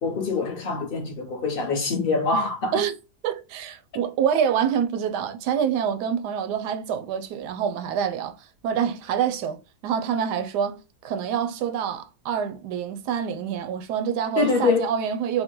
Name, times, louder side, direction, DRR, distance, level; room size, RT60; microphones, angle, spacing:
voice 1, 0.0-2.8 14.4-14.9, left 4 dB, 45° left, 0.8 m, -24 dB
voice 2, 3.2-8.4 8.6-10.8 11.0-15.4, right 8 dB, 85° right, 1.2 m, -26 dB
3.6 x 2.1 x 2.9 m
omnidirectional pair, 1.7 m